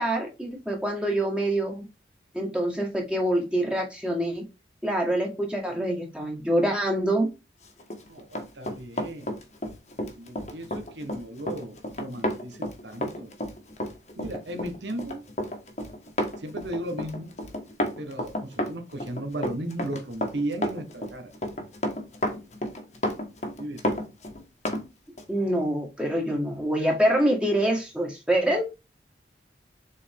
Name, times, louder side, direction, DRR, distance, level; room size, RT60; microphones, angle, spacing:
voice 1, 0.0-1.9 2.3-4.5 4.8-7.3 25.3-28.7, right 1 dB, 5° right, 1.7 m, -25 dB
Run, 7.8-24.8 25.2-25.3, left 1 dB, 40° left, 1.5 m, -31 dB
voice 2, 8.1-9.3 10.2-13.4 14.1-15.2 16.4-17.3 18.0-21.3 23.6-23.9, right 1 dB, 80° right, 1.3 m, -35 dB
7.0 x 4.4 x 3.6 m
head